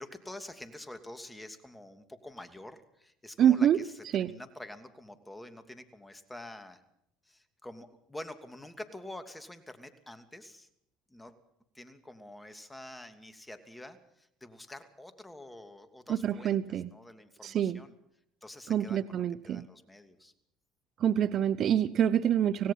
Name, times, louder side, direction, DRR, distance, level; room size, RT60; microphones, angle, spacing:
voice 1, 0.0-6.8 7.2-10.7 11.1-11.3 11.7-17.9 18.4-20.3, left 1 dB, 10° left, 9 dB, 2.7 m, -47 dB
voice 2, 3.4-3.8 4.1-4.3 16.1-16.9 17.4-17.8 18.7-19.6 21.0-22.7, right 10 dB, 50° right, 16 dB, 0.8 m, -26 dB
26.0 x 18.0 x 5.7 m, 0.72 s
supercardioid pair, 85°, 0 cm